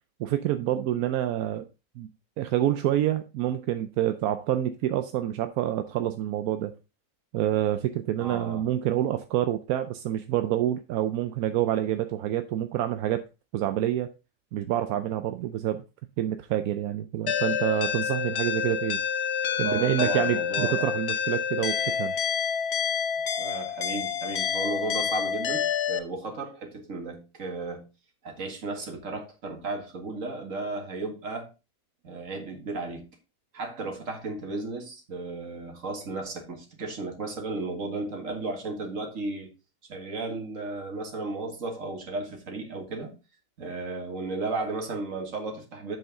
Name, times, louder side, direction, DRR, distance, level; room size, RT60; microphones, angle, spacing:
voice 1, 0.2-1.7 2.0-2.1 2.4-6.7 7.3-13.2 13.5-14.1 14.5-15.8 16.2-19.0 19.6-22.2, right 12 dB, 85° right, 1.1 m, -27 dB
voice 2, 8.2-8.7 19.6-20.9 23.4-27.9 28.2-31.5 32.0-33.1 33.5-39.5 39.9-43.1 43.6-46.0, right 3 dB, 60° right, 2.2 m, -34 dB
sound 1, 17.3-26.0, left 8 dB, 55° left, 0.9 m, -28 dB
7.9 x 5.8 x 3.8 m
omnidirectional pair, 1.5 m